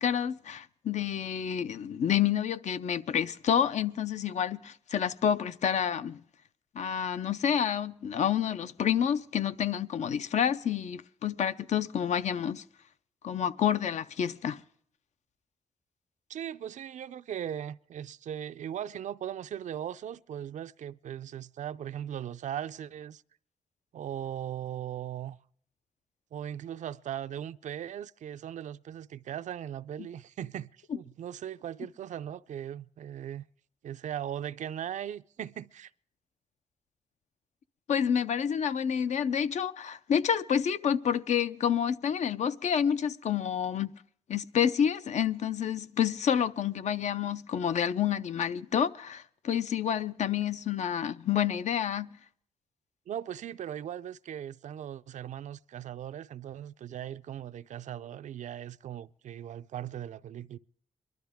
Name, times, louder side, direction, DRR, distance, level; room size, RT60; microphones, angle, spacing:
voice 1, 0.0-6.2 6.7-12.6 13.2-14.6 37.9-43.9 44.3-52.1, left 8 dB, 75° left, 0.6 m, -29 dB
voice 2, 16.3-23.2 23.9-25.4 26.3-33.4 33.8-35.9 53.1-60.6, right 10 dB, 80° right, 0.4 m, -39 dB
22.5 x 12.0 x 3.5 m
wide cardioid pair, 105°, 12 cm